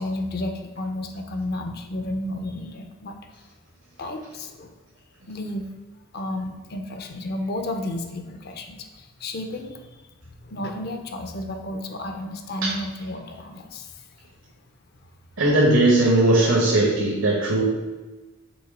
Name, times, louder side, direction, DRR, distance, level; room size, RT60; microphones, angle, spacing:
voice 1, 0.0-3.4 4.0-4.7 5.3-5.7 6.1-10.0 10.4-14.0, left 1 dB, 50° left, 6 dB, 0.6 m, -32 dB
voice 2, 15.4-17.6, right 2 dB, 75° right, -4 dB, 1.2 m, -18 dB
6.2 x 3.2 x 4.9 m, 1.2 s
head